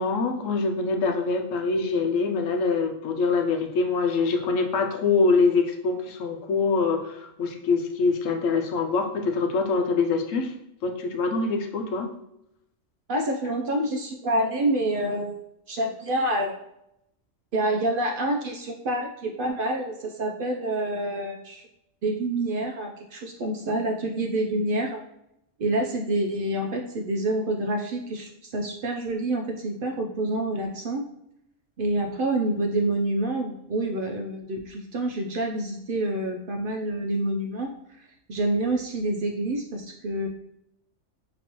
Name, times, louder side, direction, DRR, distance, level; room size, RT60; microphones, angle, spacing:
voice 1, 0.0-10.5 10.8-12.1, left 4 dB, 90° left, 4 dB, 1.0 m, -24 dB
voice 2, 13.1-15.4 15.7-16.5 17.5-21.6 22.0-25.0 25.6-31.0 31.8-37.7 38.0-40.3, right 1 dB, 60° right, 2 dB, 0.6 m, -27 dB
5.9 x 3.1 x 2.9 m, 0.80 s
omnidirectional pair, 1.3 m